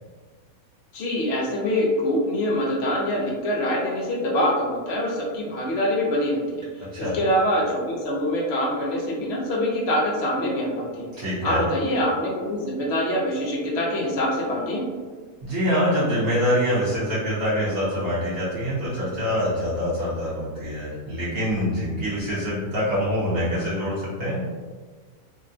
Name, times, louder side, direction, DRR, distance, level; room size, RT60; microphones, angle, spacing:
voice 1, 0.9-11.1 11.4-14.8, left 1 dB, 60° left, -3 dB, 0.7 m, -24 dB
voice 2, 11.2-11.6 15.4-24.4, equal, 60° right, -10 dB, 1.1 m, -25 dB
3.5 x 2.1 x 2.6 m, 1.5 s
omnidirectional pair, 1.7 m